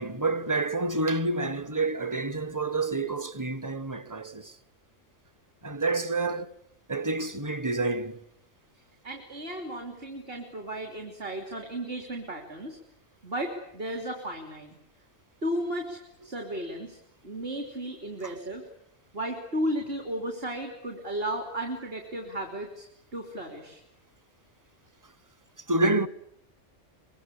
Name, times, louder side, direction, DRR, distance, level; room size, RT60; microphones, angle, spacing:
voice 1, 0.0-4.5 5.6-6.5 6.9-8.2 25.7-26.1, right 2 dB, 15° right, 1.0 m, -28 dB
voice 2, 9.0-12.8 13.2-14.8 15.4-17.0 17.2-18.7 19.1-22.9 23.1-23.8, right 1 dB, 50° right, 3.7 m, -34 dB
24.0 x 23.5 x 10.0 m
omnidirectional pair, 1.3 m